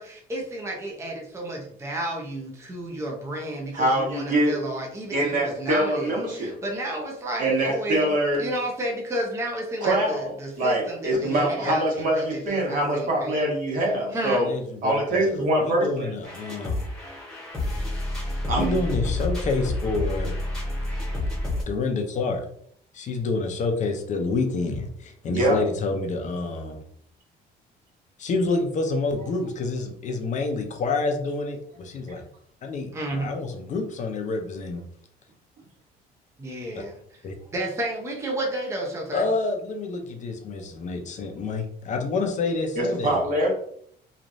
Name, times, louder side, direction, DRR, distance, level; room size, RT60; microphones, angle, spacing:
voice 1, 0.0-13.4 14.1-14.4 32.9-33.4 36.4-37.0 37.5-39.2, right 1 dB, 15° right, 0 dB, 0.6 m, -32 dB
voice 2, 3.7-4.6 5.1-6.6 7.4-8.5 9.8-10.3 10.6-14.5 14.8-16.1 18.5-18.8 25.2-25.6 42.8-43.5, right 1 dB, 55° right, -2 dB, 1.3 m, -24 dB
voice 3, 11.1-11.5 14.4-16.8 18.5-20.4 21.7-22.4 22.9-26.8 28.2-32.2 32.6-34.8 37.2-37.3 39.1-43.2, left 3 dB, 45° left, 4 dB, 0.6 m, -28 dB
sound 1, 16.2-21.6, left 2 dB, 5° left, 1.1 m, -29 dB
3.1 x 2.4 x 2.6 m, 0.63 s
cardioid pair, 110°, 17 cm